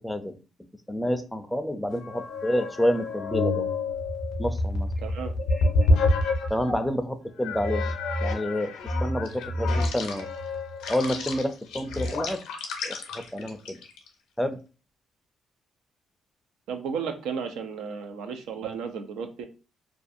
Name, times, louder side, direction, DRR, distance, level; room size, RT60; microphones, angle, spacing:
voice 1, 0.0-0.4 0.9-3.7 4.4-4.9 5.6-5.9 6.5-7.9 8.2-8.7 9.0-10.3 10.9-12.4 12.8-13.8 14.4-14.6, equal, 5° left, 8 dB, 0.4 m, -29 dB
sound 1, 1.9-6.9 7.4-14.1, left 2 dB, 90° left, 0.5 m, -28 dB
voice 2, 5.0-5.3 16.7-19.5, right 6 dB, 90° right, 7 dB, 0.4 m, -33 dB
2.5 x 2.3 x 2.5 m, 0.34 s
cardioid pair, 90°, 0 cm